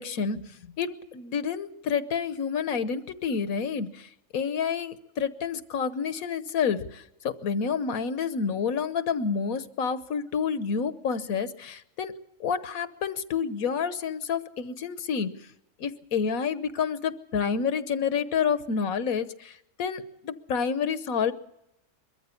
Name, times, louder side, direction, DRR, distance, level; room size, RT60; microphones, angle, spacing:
voice 1, 0.0-12.1 12.4-15.5 15.8-21.3, left 6 dB, 80° left, 13 dB, 1.4 m, -29 dB
22.5 x 14.0 x 8.4 m, 0.87 s
omnidirectional pair, 1.4 m